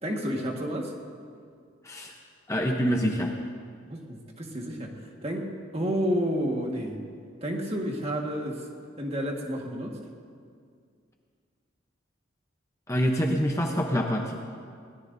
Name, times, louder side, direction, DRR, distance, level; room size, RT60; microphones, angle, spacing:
voice 1, 0.0-0.9 3.9-4.9 5.2-5.5 5.7-7.0 7.4-8.6 9.0-10.0, equal, 30° right, 0 dB, 1.6 m, -30 dB
voice 2, 2.5-3.3 12.9-14.4, equal, 15° left, 1 dB, 0.8 m, -26 dB
21.0 x 17.5 x 2.7 m, 2.2 s
head